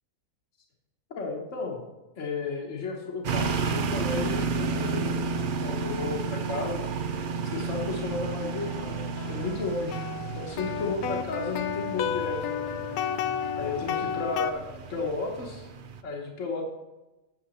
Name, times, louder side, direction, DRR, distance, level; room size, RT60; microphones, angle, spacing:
voice 1, 1.1-1.8 2.2-5.3 5.6-6.9 7.4-10.0 10.3-12.8 13.5-15.7 16.0-16.6, left 3 dB, 60° left, -1 dB, 1.4 m, -33 dB
sound 1, 3.2-16.0, right 4 dB, 55° right, 0.6 m, -32 dB
sound 2, 8.0-8.1 8.7-14.5, left 9 dB, 90° left, 1.1 m, -32 dB
8.7 x 6.7 x 4.2 m, 1.1 s
omnidirectional pair, 1.5 m